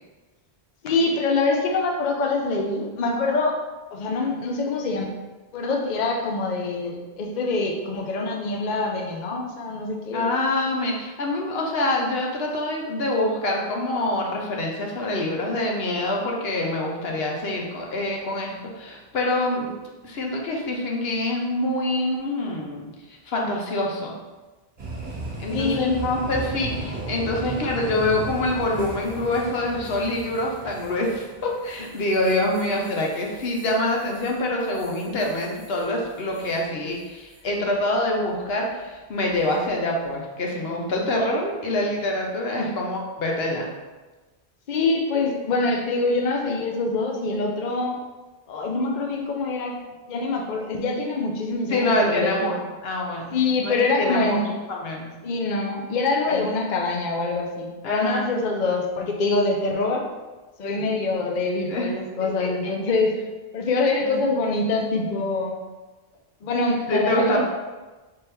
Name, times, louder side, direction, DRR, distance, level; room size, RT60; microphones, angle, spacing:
voice 1, 0.8-3.6 3.9-5.1 5.5-10.3 25.5-26.0 42.6-42.7 44.7-48.0 48.5-49.7 50.1-52.5 53.3-54.5 55.2-60.0 60.6-63.1 63.5-65.6 66.4-67.4, left 3 dB, 55° left, 1 dB, 0.7 m, -25 dB
voice 2, 10.1-19.7 20.0-22.9 23.2-24.1 25.4-43.7 51.7-54.4 54.7-55.1 56.3-56.4 57.8-58.3 61.7-61.9 62.4-62.5 64.0-64.3 66.9-67.4, left 1 dB, 80° left, 0 dB, 1.0 m, -25 dB
sound 1, 24.8-36.6 37.0-37.4 39.3-39.7, right 2 dB, 50° right, 1.3 m, -37 dB
4.3 x 3.4 x 3.4 m, 1.2 s
omnidirectional pair, 1.0 m